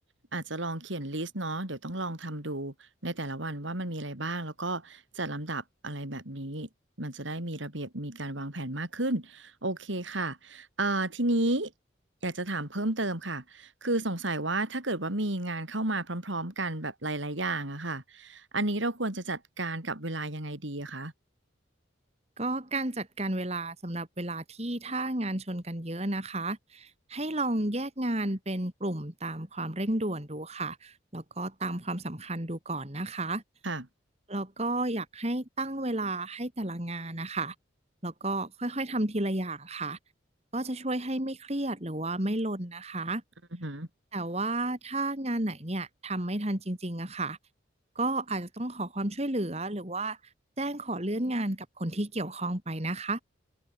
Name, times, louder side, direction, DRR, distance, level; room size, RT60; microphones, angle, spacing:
voice 1, 0.3-6.7 7.0-11.7 12.2-21.1 33.6-33.9 43.5-43.9, right 2 dB, 75° right, 4.2 m, -32 dB
voice 2, 22.4-33.4 34.3-37.5 38.0-40.0 40.5-43.2 44.1-47.4 47.9-50.2 50.6-53.2, right 2 dB, 30° right, 3.1 m, -32 dB
head